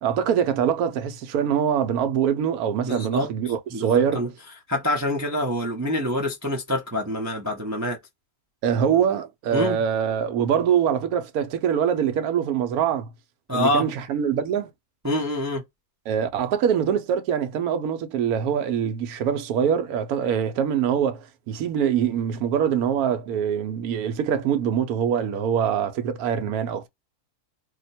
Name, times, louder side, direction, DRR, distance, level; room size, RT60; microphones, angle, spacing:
voice 1, 0.0-4.2 8.6-13.1 13.5-14.7 16.1-26.9, right 8 dB, 75° right, 1.1 m, -24 dB
voice 2, 2.8-4.3 4.7-8.0 9.5-9.8 13.5-13.9 15.0-15.6, left 1 dB, 25° right, 0.4 m, -26 dB
2.8 x 2.1 x 4.1 m
omnidirectional pair, 1.6 m